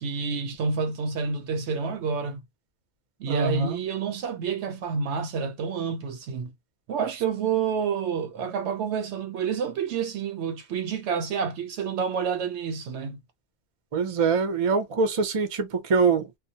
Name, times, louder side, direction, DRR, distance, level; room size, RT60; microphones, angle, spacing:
voice 1, 0.0-2.4 3.2-6.5 6.9-13.2, right 6 dB, 75° right, 0.9 m, -29 dB
voice 2, 3.3-3.8 13.9-16.3, right 4 dB, 40° right, 0.5 m, -24 dB
2.2 x 2.1 x 2.7 m
omnidirectional pair, 1.2 m